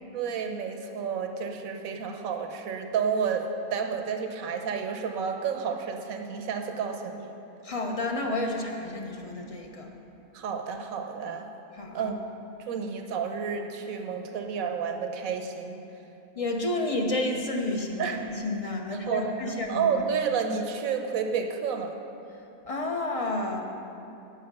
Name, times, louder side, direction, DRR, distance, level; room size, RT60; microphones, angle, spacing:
voice 1, 0.1-7.3 10.3-11.5 11.9-12.2 12.7-15.8 18.0-18.2 19.1-22.0, right 6 dB, 70° right, 5 dB, 1.3 m, -30 dB
voice 2, 7.6-9.9 11.7-12.1 16.4-19.9 22.6-23.6, left 2 dB, 25° left, 2 dB, 0.9 m, -30 dB
17.5 x 6.3 x 5.4 m, 2.8 s
omnidirectional pair, 1.6 m